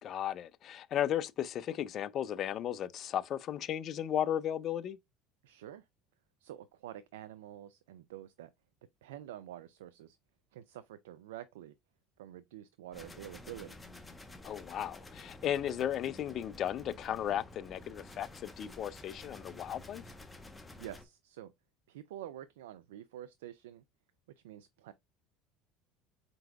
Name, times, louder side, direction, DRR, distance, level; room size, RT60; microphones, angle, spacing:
voice 1, 0.0-5.0 14.4-20.0, left 10 dB, 50° left, 0.4 m, -35 dB
voice 2, 5.4-5.9 6.4-8.5 9.0-10.2 10.5-11.8 12.2-13.8 20.8-21.5 21.9-23.8 24.4-24.9, right 12 dB, 80° right, 0.3 m, -48 dB
sound 1, 12.9-21.0, left 2 dB, 15° left, 0.8 m, -51 dB
4.3 x 3.9 x 2.2 m
hypercardioid pair, 75°, 0 cm